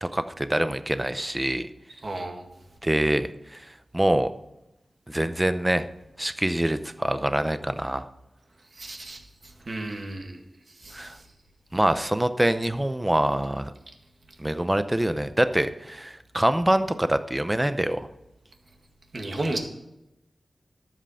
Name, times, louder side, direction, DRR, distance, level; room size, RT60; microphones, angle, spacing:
voice 1, 0.0-1.7 2.8-3.6 3.9-4.3 5.1-5.9 6.2-8.1 10.9-11.2 11.7-13.7 14.4-18.1, right 1 dB, 15° right, 11 dB, 0.6 m, -25 dB
voice 2, 2.0-2.5 8.8-9.2 9.7-10.4 10.8-11.1 19.1-19.6, right 2 dB, 50° right, 3 dB, 1.8 m, -32 dB
12.5 x 7.6 x 5.6 m, 0.91 s
wide cardioid pair, 110°, 0 cm